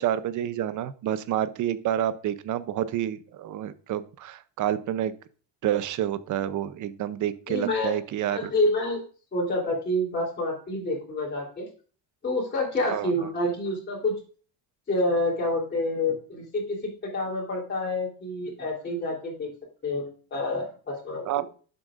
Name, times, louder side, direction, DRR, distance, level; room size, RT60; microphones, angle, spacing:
voice 1, 0.0-5.1 5.6-8.5 12.9-13.1 21.2-21.4, right 11 dB, 45° right, 14 dB, 0.7 m, -28 dB
voice 2, 7.5-8.0 8.3-9.0 9.3-11.7 12.2-14.1 14.9-19.5 19.8-21.4, left 1 dB, 25° left, -3 dB, 3.4 m, -28 dB
11.0 x 7.6 x 2.5 m, 0.40 s
cardioid pair, 155°, 43 cm